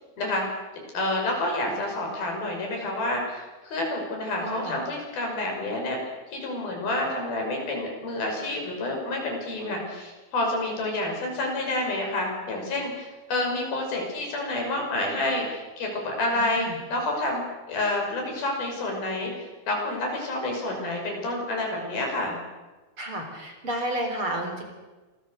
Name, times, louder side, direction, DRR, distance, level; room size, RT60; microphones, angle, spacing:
voice 1, 0.9-6.0 6.3-17.4 17.7-22.4, left 2 dB, 75° left, 1 dB, 7.7 m, -29 dB
voice 2, 4.4-4.8 16.3-16.8 23.0-24.6, right 1 dB, 35° right, 3 dB, 4.3 m, -31 dB
27.5 x 21.5 x 6.6 m, 1.2 s
omnidirectional pair, 4.3 m